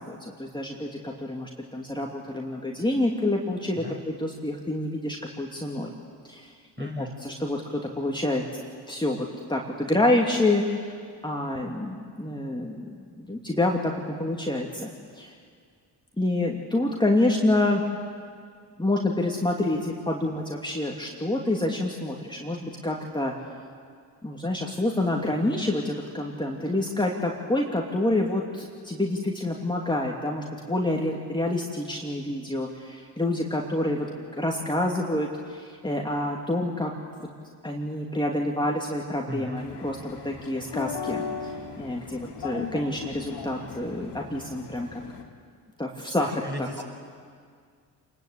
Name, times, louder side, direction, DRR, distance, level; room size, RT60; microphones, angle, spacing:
voice 1, 0.0-5.9 6.2-8.4 8.9-11.0 11.2-12.9 13.2-15.3 16.2-17.8 18.8-23.3 24.2-34.1 34.4-36.9 37.6-41.5 41.8-45.0 45.8-46.8, left 1 dB, 10° left, -1 dB, 2.8 m, -27 dB
voice 2, 6.8-7.2 39.3-39.7 46.2-46.8, equal, 20° right, 2 dB, 5.9 m, -36 dB
sound 1, 39.6-45.2, left 6 dB, 55° left, 2.7 m, -37 dB
27.5 x 21.5 x 8.4 m, 2.1 s
figure-of-eight pair, 40°, 49 cm